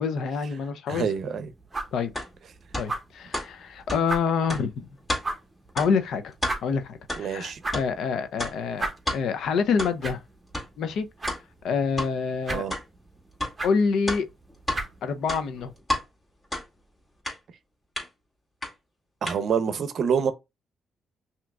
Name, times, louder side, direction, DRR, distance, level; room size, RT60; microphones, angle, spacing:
voice 1, 0.0-1.1 1.9-2.1 2.8-4.9 5.7-6.3 6.6-10.2 10.8-11.1 11.6-12.6 13.6-14.3 15.0-15.7, left 5 dB, 75° left, 0.6 m, -27 dB
sound 1, 0.9-15.8, right 2 dB, 25° right, 1.0 m, -39 dB
voice 2, 0.9-1.5 7.2-7.6 12.5-12.7 19.2-20.3, right 6 dB, 60° right, 0.7 m, -26 dB
sound 2, 2.1-2.3 2.7-2.9 3.3-3.5 3.9-4.0 4.5-4.6 5.1-5.2 5.8-5.9 6.3-6.6 7.1-7.2 7.7-7.9 8.4-8.5 9.1-9.2 9.8-9.9 10.5-10.7 11.3-11.4 12.0-12.1 12.7-12.8 13.4-13.5 14.1-14.8 15.2-16.0 16.5-16.7 17.2-17.4 18.0-18.1 18.6-18.7 19.3-19.4, left 1 dB, 20° left, 2.2 m, -30 dB
5.9 x 2.9 x 2.4 m
cardioid pair, 90°, 0 cm